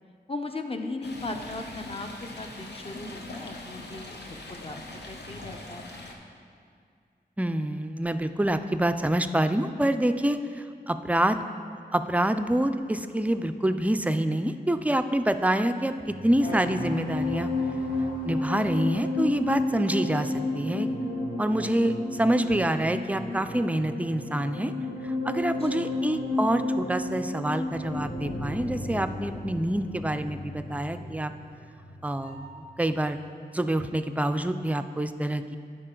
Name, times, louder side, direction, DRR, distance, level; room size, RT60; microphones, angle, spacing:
voice 1, 0.3-4.8 5.1-5.9 25.6-26.0, left 2 dB, 35° left, 5 dB, 0.6 m, -38 dB
Stream, 1.0-6.1, left 2 dB, 80° left, 0.9 m, -41 dB
voice 2, 7.4-11.4 11.9-17.5 18.2-20.9 21.4-24.7 25.0-31.3 32.0-33.2 33.5-35.6, right 1 dB, 10° right, 9 dB, 0.3 m, -26 dB
sound 1, 16.1-32.7 33.0-33.3, left 2 dB, 50° left, 1.1 m, -32 dB
14.0 x 4.9 x 3.8 m, 2.2 s
wide cardioid pair, 90°, 17 cm